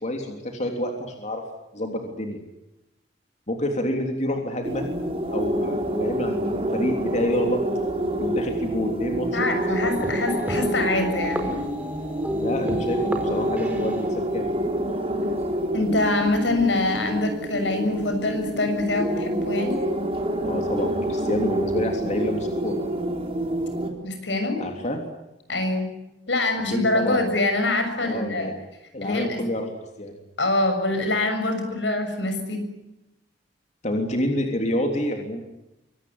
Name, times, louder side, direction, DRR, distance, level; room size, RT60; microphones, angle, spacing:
voice 1, 0.0-1.4 1.7-2.4 3.5-4.8 5.3-7.6 8.2-9.5 12.4-14.6 20.4-22.7 24.6-25.0 26.7-27.2 28.0-28.5 28.9-29.7 30.0-30.1 33.8-35.4, left 1 dB, 40° left, 3 dB, 3.3 m, -28 dB
sound 1, 4.6-23.9, right 1 dB, 30° right, 3.8 m, -27 dB
voice 2, 9.3-11.5 15.7-19.8 24.0-24.6 25.5-25.9 26.3-28.5 29.0-29.4 30.4-32.6, left 2 dB, 85° left, 7 dB, 6.9 m, -24 dB
sound 2, 9.8-15.7, equal, 10° right, 4.6 m, -32 dB
24.5 x 19.0 x 9.7 m, 0.94 s
head